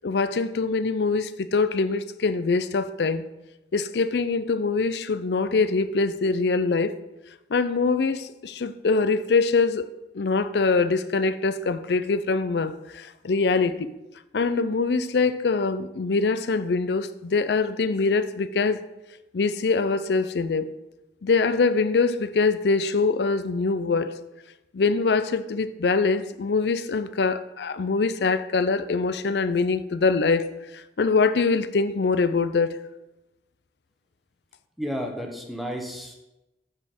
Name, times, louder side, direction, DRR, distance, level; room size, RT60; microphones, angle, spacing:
voice 1, 0.0-3.2 3.7-6.9 7.5-9.9 10.1-13.9 14.3-18.8 19.3-20.7 21.2-24.1 24.7-30.5 31.0-32.8, left 4 dB, 75° left, 0.5 m, -23 dB
voice 2, 34.8-36.1, equal, ahead, 1.1 m, -32 dB
10.5 x 4.2 x 7.3 m
head